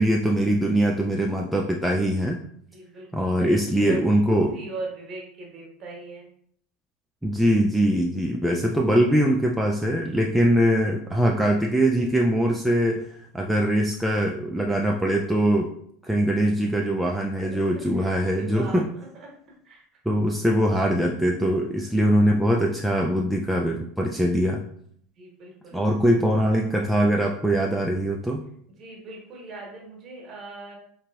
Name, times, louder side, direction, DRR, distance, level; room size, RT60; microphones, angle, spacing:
voice 1, 0.0-2.4 3.1-4.5 7.2-15.7 16.0-18.9 20.1-24.6 25.7-28.4, equal, 5° right, 0 dB, 0.3 m, -22 dB
voice 2, 2.7-6.3 13.4-13.9 17.0-19.3 19.6-19.8 21.6-21.9 25.2-25.8 28.8-30.8, right 2 dB, 40° right, -1 dB, 1.0 m, -41 dB
3.7 x 2.7 x 2.2 m, 0.65 s
figure-of-eight pair, 75°, 0 cm